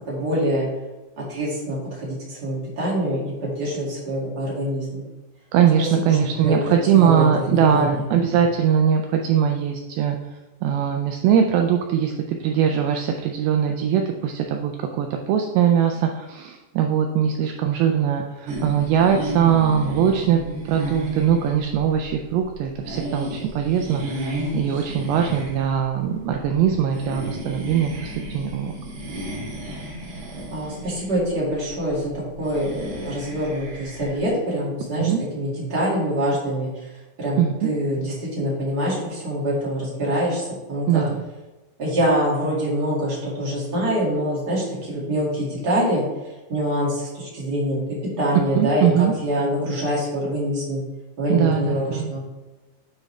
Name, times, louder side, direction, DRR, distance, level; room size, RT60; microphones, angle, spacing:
voice 1, 0.1-0.7 1.2-5.0 5.8-6.2 6.4-8.1 30.5-36.9 37.2-41.0 41.8-47.8 48.2-50.8 51.2-52.3, equal, 40° right, -6 dB, 1.5 m, -25 dB
voice 2, 5.5-14.7 15.0-20.4 20.7-28.7 35.0-35.2 37.4-37.7 40.9-41.2 48.6-49.1 51.3-52.1, right 8 dB, 90° right, 4 dB, 2.1 m, -21 dB
sound 1, 18.5-34.2, right 1 dB, 70° right, 3.9 m, -33 dB
9.1 x 4.9 x 3.2 m, 1.1 s
omnidirectional pair, 4.9 m